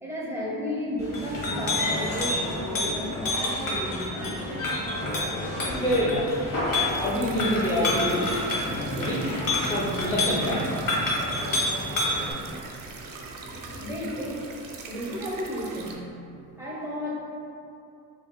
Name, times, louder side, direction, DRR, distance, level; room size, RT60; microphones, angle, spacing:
voice 1, 0.0-4.4 13.8-14.5 14.9-16.2 16.6-17.1, equal, 5° right, -6 dB, 1.2 m, -33 dB
Chink clink, 1.0-12.3, left 2 dB, 45° left, 1.1 m, -28 dB
voice 2, 5.8-6.4 6.9-8.2 8.9-9.2 9.7-10.8 13.0-13.2 13.5-13.9, equal, 10° left, -7 dB, 0.7 m, -27 dB
sound 1, 6.9-15.9, right 4 dB, 45° right, 0.6 m, -42 dB
sound 2, 8.6-15.1, right 1 dB, 60° left, 1.4 m, -40 dB
4.5 x 2.8 x 2.2 m, 2.6 s
hypercardioid pair, 45°, 48 cm